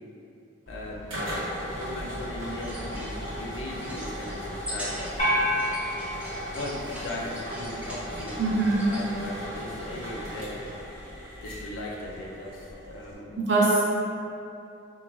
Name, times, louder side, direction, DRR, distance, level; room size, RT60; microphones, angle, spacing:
voice 1, 0.7-1.2 1.8-5.7 6.5-8.4 8.8-10.7 11.4-13.4, left 1 dB, 70° left, -2 dB, 0.4 m, -38 dB
sound 1, 0.7-13.2, equal, 85° right, 1.0 m, -37 dB
sound 2, 2.6-9.0, equal, 5° right, 0.3 m, -41 dB
sound 3, 5.2-7.7, equal, 35° left, 0.6 m, -29 dB
voice 2, 8.4-8.8 13.4-13.8, right 3 dB, 60° right, -5 dB, 0.5 m, -22 dB
3.1 x 2.1 x 2.3 m, 2.7 s
head